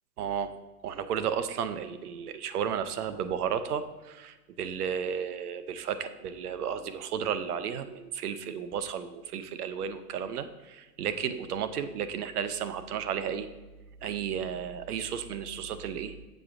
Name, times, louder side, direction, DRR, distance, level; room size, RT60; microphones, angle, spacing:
voice 1, 0.2-0.5 0.8-13.5 14.0-16.3, right 8 dB, 65° right, 11 dB, 0.6 m, -33 dB
7.0 x 5.7 x 2.5 m, 1.2 s
hypercardioid pair, 145°, 49 cm